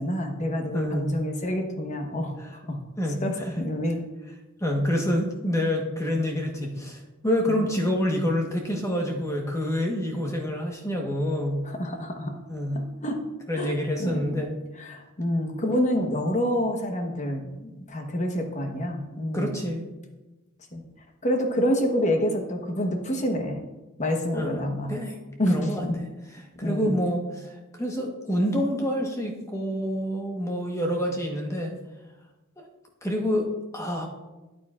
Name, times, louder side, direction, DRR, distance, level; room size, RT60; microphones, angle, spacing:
voice 1, 0.0-2.8 3.2-4.0 7.5-7.6 11.6-12.4 12.7-13.2 13.5-14.5 14.8-19.6 20.7-20.8 21.2-23.6 24.0-25.0 25.4-26.0 26.6-27.0, equal, 35° left, 4 dB, 1.1 m, -28 dB
voice 2, 0.7-1.1 3.0-3.2 4.6-11.6 12.5-12.8 13.5-14.5 19.3-19.8 24.3-24.6 24.9-25.1 25.5-25.8 26.6-31.7 32.6-32.7 33.0-33.5 33.7-34.1, equal, 15° left, 1 dB, 1.2 m, -27 dB
13.5 x 9.0 x 2.5 m, 1.1 s
head